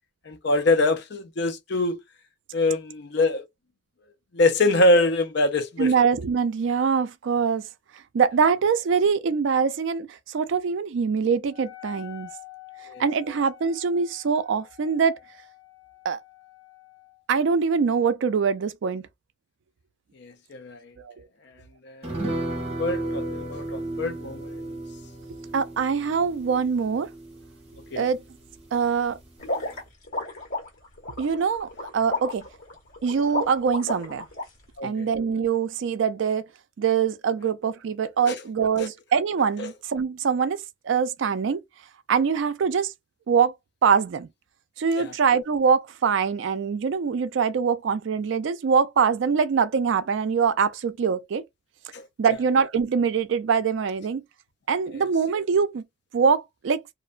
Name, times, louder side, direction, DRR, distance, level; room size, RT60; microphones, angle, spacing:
voice 1, 0.3-2.0 2.5-3.4 4.3-5.9 12.9-13.0 20.2-20.9 21.8-24.6 27.9-28.0 34.8-35.1 38.3-38.4 38.8-38.9 45.0-45.1 51.9-52.0, left 2 dB, 55° left, 0.5 m, -24 dB
voice 2, 5.8-7.7 8.1-12.3 13.0-15.2 16.0-16.2 17.3-19.1 21.0-21.1 25.5-27.1 28.0-28.2 28.7-29.2 31.2-32.5 33.0-34.3 34.8-36.5 36.8-40.6 40.8-41.6 42.1-42.9 43.3-43.5 43.8-44.3 44.8-51.4 52.2-54.2 54.7-55.8 56.1-56.8, right 6 dB, 65° right, 0.3 m, -23 dB
Wind instrument woodwind instrument, 11.5-17.2, left 19 dB, 25° left, 0.9 m, -48 dB
sound 1, 22.0-28.8 29.1-29.2 29.6-29.7, right 1 dB, 30° right, 0.8 m, -34 dB
sound 2, 29.4-34.4, left 2 dB, 75° left, 1.3 m, -32 dB
2.5 x 2.1 x 2.4 m
head